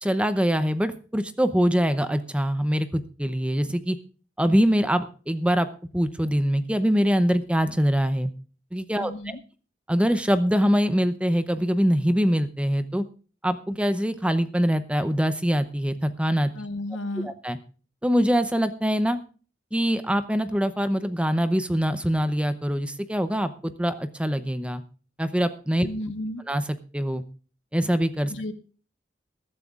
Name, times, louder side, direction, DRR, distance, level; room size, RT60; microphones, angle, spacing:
voice 1, 0.0-4.0 4.4-5.7 5.9-8.3 8.7-9.1 9.9-13.0 13.4-16.5 17.2-17.6 18.0-19.2 19.7-24.8 25.2-25.9 26.5-26.6 26.9-27.2 27.7-28.3, equal, 5° right, 11 dB, 0.7 m, -23 dB
voice 2, 8.9-9.4 16.5-17.3 25.8-26.4 28.3-28.5, left 1 dB, 85° left, 9 dB, 1.4 m, -33 dB
22.0 x 12.0 x 2.5 m, 0.38 s
head